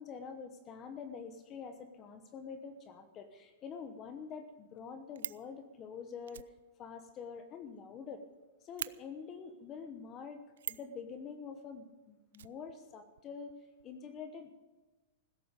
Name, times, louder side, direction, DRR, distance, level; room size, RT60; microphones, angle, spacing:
voice 1, 0.0-6.5 6.8-8.2 8.6-13.6 13.8-14.5, left 6 dB, 20° left, 8 dB, 1.0 m, -46 dB
Fire, 4.7-5.5 6.3-8.0 8.3-8.4 8.8-8.9 10.6-10.9 12.3-13.2 13.5-13.6 13.8-13.9, right 10 dB, 90° right, 0.4 m, -43 dB
16.0 x 14.0 x 5.2 m, 1.2 s
supercardioid pair, 170°, 0 cm